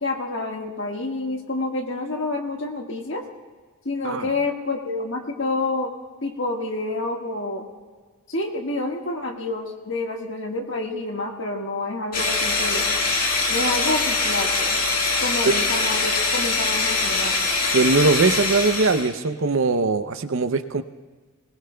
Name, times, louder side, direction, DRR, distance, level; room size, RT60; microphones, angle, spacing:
voice 1, 0.0-3.2 3.8-5.9 6.2-7.7 8.3-12.9 13.5-14.7 15.2-17.4, left 2 dB, 60° left, 1 dB, 1.6 m, -28 dB
sound 1, 12.1-19.1, left 3 dB, 40° left, 1.8 m, -23 dB
voice 2, 17.7-20.8, right 3 dB, 65° right, 10 dB, 0.6 m, -21 dB
20.5 x 19.5 x 2.3 m, 1.4 s
head